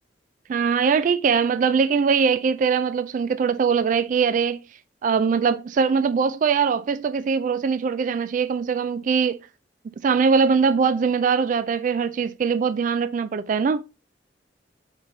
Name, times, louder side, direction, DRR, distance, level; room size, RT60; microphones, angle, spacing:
voice 1, 0.5-4.6 5.0-9.4 10.0-13.8, right 6 dB, 45° right, 0.3 m, -21 dB
5.4 x 4.5 x 3.9 m
head